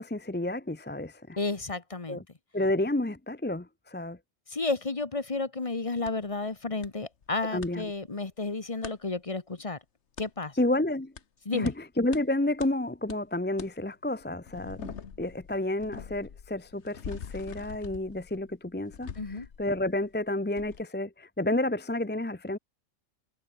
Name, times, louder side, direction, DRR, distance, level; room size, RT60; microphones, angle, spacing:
voice 1, 0.0-1.4 2.1-2.2 2.5-4.2 7.5-7.8 10.6-11.1 11.5-11.7 12.0-22.6, left 1 dB, 10° left, 0.6 m, -30 dB
voice 2, 1.4-2.2 4.5-9.8 10.2-10.6 11.4-11.7 19.1-19.5, left 3 dB, 25° left, 1.2 m, -32 dB
sound 1, 6.1-6.2 6.8-6.9 7.2-7.7 8.8-9.0 10.2-10.3 11.2-11.3 11.7-11.8 12.1-12.2 12.6-12.7 13.1-13.2 13.6-13.7 14.2-20.2 20.6-20.8, left 7 dB, 60° left, 1.5 m, -44 dB
omnidirectional pair, 1.4 m